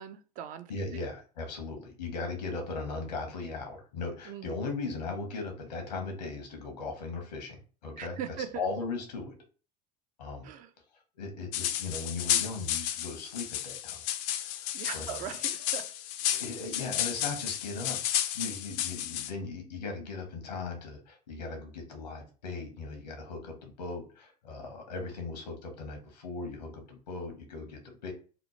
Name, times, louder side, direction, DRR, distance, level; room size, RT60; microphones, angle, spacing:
voice 1, 0.0-0.7 4.3-4.5 8.0-8.5 10.4-10.7 14.7-15.8, right 9 dB, 40° right, 8 dB, 0.4 m, -39 dB
voice 2, 0.7-9.4 10.2-10.5 10.9-14.0 14.4-15.4 16.3-28.1, left 3 dB, 80° left, 4 dB, 0.9 m, -38 dB
sound 1, 11.5-19.3, left 11 dB, 55° left, 0.4 m, -32 dB
2.9 x 2.0 x 2.9 m, 0.37 s
hypercardioid pair, 85°, 21 cm